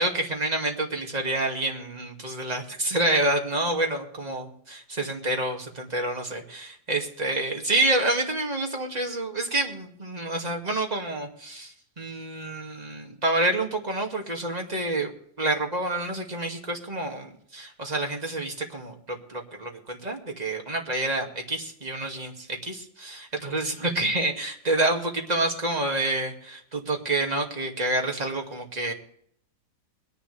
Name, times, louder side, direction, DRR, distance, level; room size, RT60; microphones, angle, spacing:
voice 1, 0.0-15.1 15.4-28.9, right 2 dB, 20° right, 1 dB, 2.3 m, -28 dB
22.0 x 11.0 x 3.4 m, 0.66 s
omnidirectional pair, 2.0 m